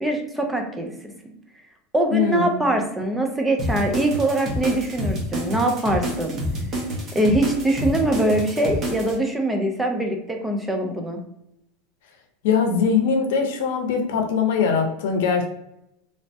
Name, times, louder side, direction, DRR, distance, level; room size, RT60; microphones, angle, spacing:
voice 1, 0.0-0.9 1.9-6.4 7.1-11.2, right 1 dB, 10° right, 3 dB, 0.5 m, -23 dB
voice 2, 2.1-2.7 12.4-15.5, left 6 dB, 80° left, 4 dB, 0.6 m, -21 dB
sound 1, 3.6-9.1, equal, 35° right, 0.9 m, -28 dB
3.2 x 2.1 x 2.7 m, 0.80 s
supercardioid pair, 130°, 0 cm